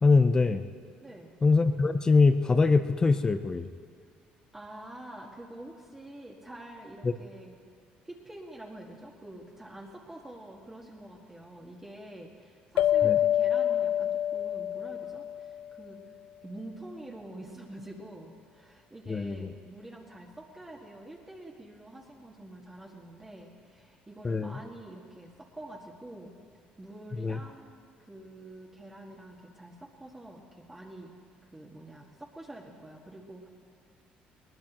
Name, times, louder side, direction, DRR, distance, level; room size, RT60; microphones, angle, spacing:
voice 1, 0.0-0.6 1.4-3.7 7.0-7.1 13.0-13.2 19.1-19.5 24.2-24.6 27.2-27.4, left 4 dB, 25° left, 9 dB, 0.7 m, -23 dB
voice 2, 1.0-1.3 4.5-7.6 8.0-16.0 16.4-26.3 26.8-31.1 31.5-33.5, right 1 dB, 15° right, -2 dB, 1.8 m, -46 dB
sound 1, 12.8-15.8, left 11 dB, 75° left, 0.4 m, -27 dB
21.5 x 19.5 x 3.1 m, 2.2 s
cardioid pair, 110°, 3 cm